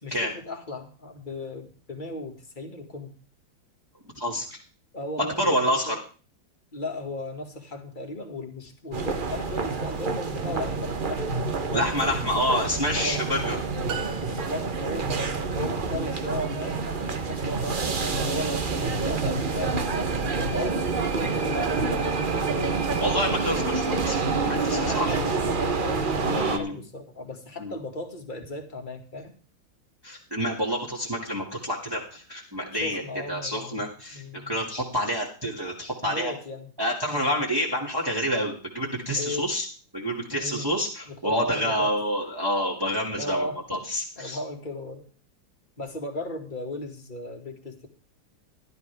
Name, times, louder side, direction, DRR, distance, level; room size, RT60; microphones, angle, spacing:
voice 1, 0.0-3.2 4.9-6.0 6.7-11.9 12.9-13.3 14.1-15.3 15.5-20.1 20.5-22.8 24.7-29.4 32.8-34.6 36.0-36.7 39.2-39.5 40.4-40.7 41.1-41.9 43.2-43.8 44.2-45.1 45.8-47.9, left 1 dB, 25° left, 4 dB, 2.0 m, -36 dB
voice 2, 4.2-4.6 5.4-5.9 11.7-13.6 23.0-25.2 26.2-26.8 27.6-27.7 30.0-33.0 33.3-36.3 36.8-39.7 39.9-44.4, equal, 10° right, -3 dB, 2.3 m, -28 dB
sound 1, 8.9-26.6, right 4 dB, 35° right, 0.9 m, -27 dB
sound 2, 13.9-15.0, right 8 dB, 60° right, 1.1 m, -38 dB
16.5 x 12.0 x 3.5 m, 0.38 s
omnidirectional pair, 2.1 m